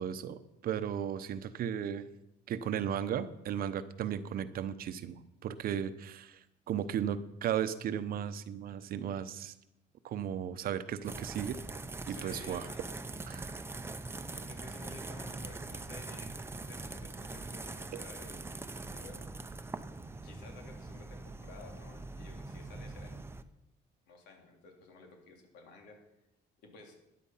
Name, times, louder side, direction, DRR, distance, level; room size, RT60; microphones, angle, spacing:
voice 1, 0.0-2.1 2.5-9.5 10.0-11.6 12.1-12.7 13.3-13.6 17.9-18.0, right 9 dB, 60° right, 12 dB, 0.9 m, -35 dB
sound 1, 11.0-23.4, right 3 dB, 15° right, 0.7 m, -43 dB
voice 2, 12.1-12.9 14.3-19.2 20.2-23.3 24.1-26.0 26.6-27.0, left 3 dB, 90° left, 2 dB, 3.0 m, -54 dB
13.0 x 10.0 x 5.7 m, 0.86 s
cardioid pair, 110°, 17 cm